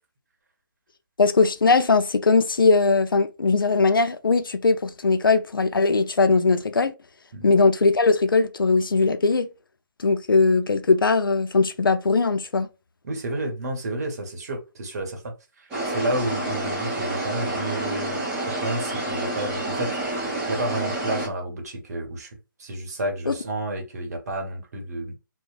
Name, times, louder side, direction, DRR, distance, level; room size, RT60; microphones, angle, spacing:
voice 1, 1.2-6.9 7.4-9.5 10.0-12.7 23.3-23.4, left 4 dB, 85° left, 0.4 m, -20 dB
voice 2, 13.0-18.2 18.5-25.1, right 1 dB, 50° right, 0.9 m, -31 dB
sound 1, 15.7-21.3, right 2 dB, 10° right, 0.8 m, -28 dB
2.8 x 2.0 x 2.4 m
figure-of-eight pair, 150°, 11 cm